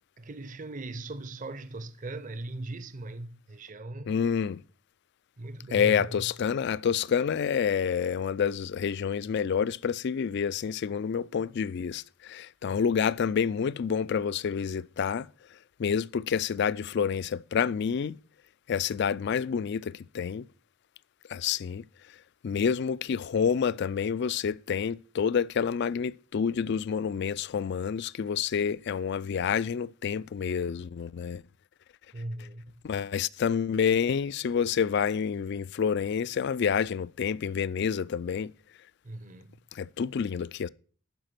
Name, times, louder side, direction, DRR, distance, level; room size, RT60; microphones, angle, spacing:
voice 1, 0.2-4.1 5.4-6.3 32.1-32.8 39.0-39.6, right 2 dB, 35° right, 0.6 m, -39 dB
voice 2, 4.1-4.6 5.7-15.3 15.8-18.2 18.7-20.5 21.3-21.8 22.4-31.4 32.8-38.5 39.7-40.7, left 7 dB, 55° left, 0.3 m, -28 dB
11.5 x 5.1 x 5.8 m
head